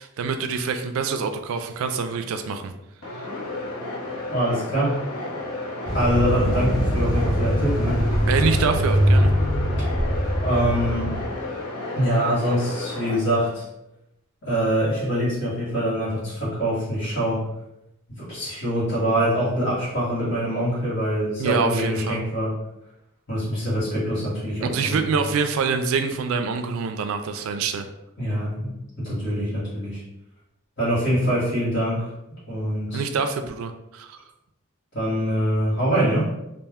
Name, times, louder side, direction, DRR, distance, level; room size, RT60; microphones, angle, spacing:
voice 1, 0.0-2.7 3.2-3.3 8.3-9.3 21.4-22.2 24.6-27.9 32.9-34.2, right 5 dB, 65° right, 8 dB, 0.3 m, -25 dB
sound 1, 3.0-13.2, left 2 dB, 80° left, 0.9 m, -32 dB
voice 2, 4.3-5.0 5.9-8.1 10.4-11.2 11.9-13.6 14.4-17.4 18.2-22.5 23.3-25.0 28.2-30.0 30.8-32.1 32.5-33.0 34.9-36.3, equal, 55° left, -9 dB, 1.4 m, -24 dB
sound 2, 5.9-11.4, equal, 20° left, 0.5 m, -22 dB
2.5 x 2.1 x 3.4 m, 0.90 s
head